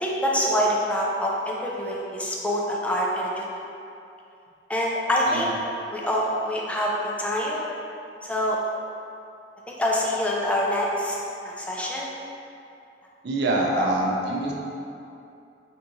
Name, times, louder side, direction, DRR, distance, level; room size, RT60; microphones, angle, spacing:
voice 1, 0.0-3.4 4.7-5.5 5.9-6.9 7.2-7.6 8.2-8.6 9.7-11.2 11.4-12.1 13.8-13.9, equal, 5° left, -3 dB, 0.3 m, -25 dB
voice 2, 13.2-14.5, right 2 dB, 65° right, -1 dB, 0.5 m, -25 dB
3.4 x 2.8 x 2.7 m, 2.6 s
head